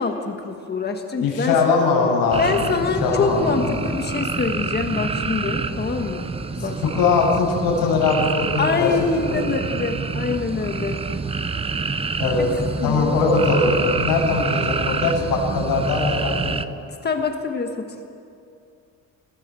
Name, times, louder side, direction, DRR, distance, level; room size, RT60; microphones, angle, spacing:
voice 1, 0.0-1.5 2.4-6.8 8.6-11.0 12.4-13.2 17.0-18.0, left 4 dB, 30° left, 4 dB, 1.6 m, -25 dB
voice 2, 1.2-2.7 3.0-3.8 6.9-8.9 9.3-9.6 12.2-12.5 12.8-16.7, left 4 dB, 85° left, -1 dB, 7.0 m, -21 dB
sound 1, 2.3-16.6, right 4 dB, 15° right, 0.6 m, -27 dB
25.5 x 20.0 x 7.7 m, 2.5 s
cardioid pair, 155°, 34 cm